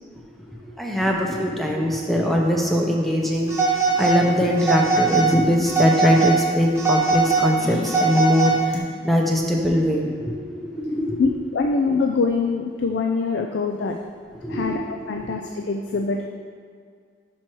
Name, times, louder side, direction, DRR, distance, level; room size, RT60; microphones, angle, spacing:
voice 1, 0.6-11.2 14.4-14.8 15.2-15.3, equal, ahead, -1 dB, 0.6 m, -22 dB
Telephone, 3.5-4.2 4.6-5.3 5.7-6.4 6.8-8.8, right 4 dB, 15° right, 1.0 m, -21 dB
voice 2, 11.2-14.0 14.5-14.8 15.1-16.3, left 4 dB, 80° left, 3 dB, 0.4 m, -24 dB
6.0 x 4.6 x 4.5 m, 2.1 s
head